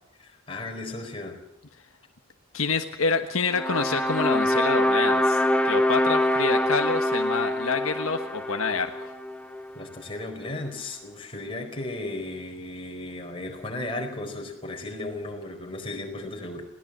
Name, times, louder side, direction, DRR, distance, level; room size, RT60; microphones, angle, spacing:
voice 1, 0.2-1.4 9.7-16.7, left 2 dB, 25° left, 2 dB, 4.6 m, -35 dB
voice 2, 2.5-9.1, left 4 dB, 70° left, 6 dB, 1.3 m, -27 dB
sound 1, 3.5-9.7, left 1 dB, 5° left, 1.2 m, -24 dB
21.5 x 18.0 x 7.5 m, 0.81 s
head